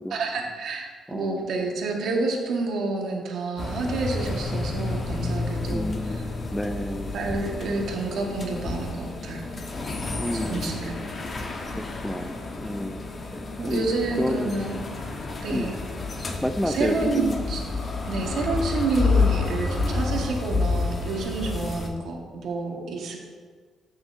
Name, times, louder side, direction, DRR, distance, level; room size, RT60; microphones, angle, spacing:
voice 1, 0.1-6.3 7.1-9.4 10.3-11.0 13.6-14.8 15.4-15.7 16.6-17.6 18.1-23.2, right 3 dB, 70° right, 0 dB, 1.5 m, -29 dB
voice 2, 1.1-1.4 5.7-6.2 6.5-7.1 10.2-10.7 12.0-13.0 13.3-13.4 13.7-13.9 14.2-14.5 15.5-15.7 16.4-17.4, left 1 dB, 5° left, 8 dB, 0.4 m, -29 dB
sound 1, 3.6-21.9, left 3 dB, 40° left, 1.1 m, -29 dB
12.5 x 6.1 x 2.7 m, 1.6 s
cardioid pair, 90°, 0 cm